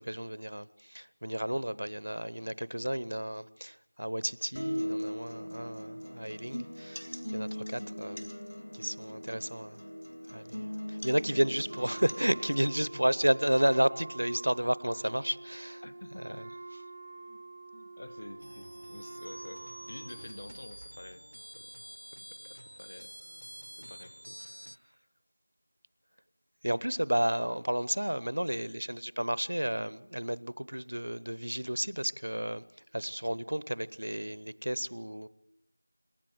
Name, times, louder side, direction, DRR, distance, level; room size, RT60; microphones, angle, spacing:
voice 1, 0.0-7.0 7.3-8.3 8.7-9.8 10.3-15.8 26.6-32.6 32.9-35.3, right 1 dB, 60° right, 19 dB, 0.9 m, -32 dB
sound 1, 4.6-12.5, equal, 70° left, 3.2 m, -39 dB
Wind instrument woodwind instrument, 11.7-20.5, right 2 dB, 15° right, 0.7 m, -46 dB
voice 2, 15.8-16.5 17.3-17.4 17.7-21.2 21.5-21.7 22.1-23.1 23.8-24.4, left 1 dB, 25° left, 13 dB, 0.8 m, -49 dB
sound 2, 18.4-24.8, equal, 80° right, 1.1 m, -48 dB
27.0 x 11.5 x 9.5 m, 0.79 s
figure-of-eight pair, 175°, 0 cm